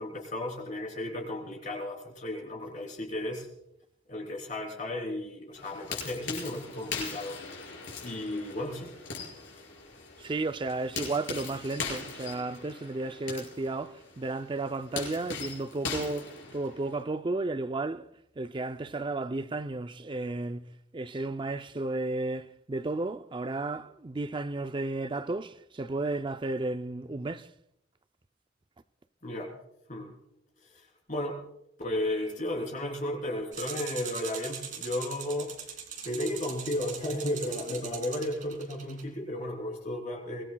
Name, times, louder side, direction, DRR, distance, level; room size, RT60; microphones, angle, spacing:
voice 1, 0.0-3.5 4.1-7.4 8.0-8.9 29.2-29.6 29.9-30.1 30.7-31.4 31.8-35.5 36.0-40.4, left 1 dB, 45° left, 3.4 m, -34 dB
sound 1, 5.5-17.0, left 4 dB, 75° left, 5.6 m, -40 dB
voice 2, 10.2-18.1 18.4-20.6 20.9-27.5, right 2 dB, 25° right, 0.5 m, -33 dB
sound 2, 33.5-39.0, right 7 dB, 45° right, 2.6 m, -41 dB
24.0 x 18.5 x 2.3 m
head